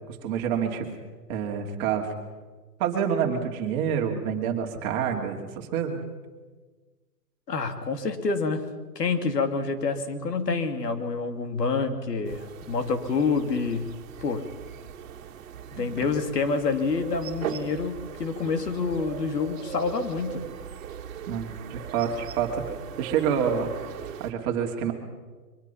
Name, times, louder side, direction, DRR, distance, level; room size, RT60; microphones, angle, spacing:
voice 1, 0.1-0.9 1.3-2.1 2.8-6.0 15.8-15.9 21.3-22.6 23.0-23.7 24.2-24.9, right 7 dB, 25° right, 2 dB, 2.6 m, -27 dB
voice 2, 7.5-8.6 8.9-14.5 15.7-20.5, left 4 dB, 80° left, 7 dB, 2.9 m, -27 dB
sound 1, 12.3-24.3, right 9 dB, 55° right, 2.1 m, -39 dB
23.5 x 23.0 x 5.8 m, 1.3 s
hypercardioid pair, 155°, 48 cm